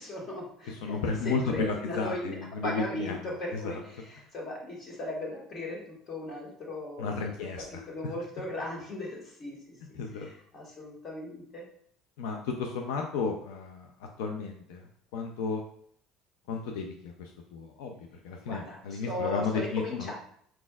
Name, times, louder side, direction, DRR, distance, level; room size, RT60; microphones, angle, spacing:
voice 1, 0.0-7.3 7.7-11.6 18.5-20.1, left 1 dB, 45° left, -2 dB, 1.7 m, -38 dB
voice 2, 0.7-3.2 7.0-7.6 10.0-10.3 12.2-15.6 16.5-18.0 18.2-20.1, left 4 dB, 90° left, 3 dB, 0.5 m, -33 dB
4.3 x 4.2 x 2.3 m, 0.63 s
supercardioid pair, 105°, 0 cm